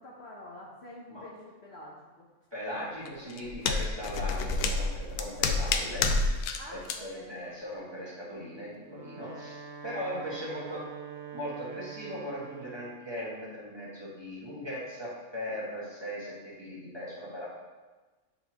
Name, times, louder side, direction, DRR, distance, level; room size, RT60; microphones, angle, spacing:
voice 1, 0.0-2.3 6.6-7.4 10.2-10.6, left 1 dB, 50° left, -4 dB, 1.0 m, -47 dB
voice 2, 2.5-10.8 11.3-17.5, equal, 20° right, -7 dB, 1.5 m, -39 dB
sound 1, 3.1-6.6 6.9-7.0, left 4 dB, 85° left, 1.1 m, -29 dB
Wind instrument woodwind instrument, 8.7-13.0, right 7 dB, 70° right, 0.4 m, -44 dB
9.0 x 4.2 x 2.9 m, 1.3 s
omnidirectional pair, 1.6 m